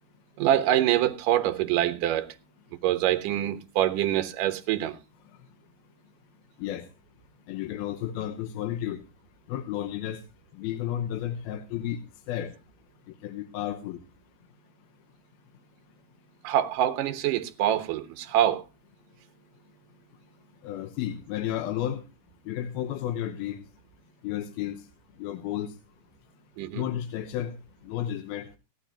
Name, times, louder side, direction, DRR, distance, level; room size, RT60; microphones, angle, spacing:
voice 1, 0.4-2.3 2.8-5.0 16.4-18.6 26.6-26.8, right 12 dB, 65° right, 2.6 m, -25 dB
voice 2, 7.5-9.0 9.5-10.2 10.5-12.0 12.3-12.5 13.2-14.0 20.6-22.0 22.5-23.6 24.2-24.8 25.2-25.7 26.7-27.6 27.8-28.5, left 11 dB, 80° left, 2.7 m, -32 dB
18.0 x 11.5 x 2.8 m
omnidirectional pair, 4.4 m